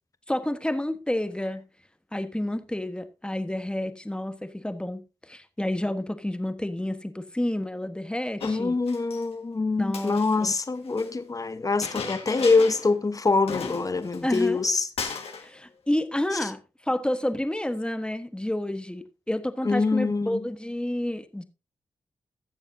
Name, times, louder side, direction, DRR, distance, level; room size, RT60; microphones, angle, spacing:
voice 1, 0.3-1.6 2.1-8.7 9.8-10.5 14.2-14.6 15.4-21.4, left 1 dB, 10° left, 1.2 m, -30 dB
Chink clink, 8.4-9.2 9.8-11.1 11.8-12.9 13.2-13.3 13.5-14.7 15.0-15.5, left 5 dB, 75° left, 1.7 m, -36 dB
voice 2, 8.4-14.9 16.4-16.5 19.6-20.4, left 3 dB, 35° left, 1.0 m, -24 dB
16.5 x 7.0 x 2.7 m
cardioid pair, 50°, 10 cm